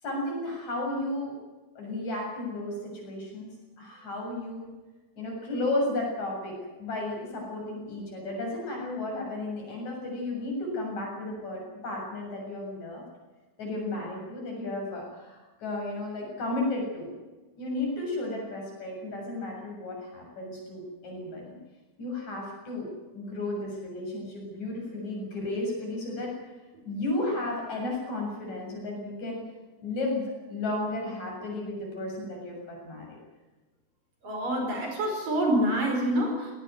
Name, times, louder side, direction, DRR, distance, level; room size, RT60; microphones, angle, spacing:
voice 1, 0.0-1.4 1.8-3.5 3.8-4.7 5.2-13.0 13.6-17.1 17.6-21.4 22.0-26.3 26.9-29.4 29.8-33.2, left 2 dB, 50° left, 0 dB, 8.5 m, -33 dB
voice 2, 34.2-36.5, right 1 dB, 65° right, 2 dB, 6.6 m, -26 dB
19.5 x 18.0 x 9.5 m, 1.2 s
omnidirectional pair, 4.1 m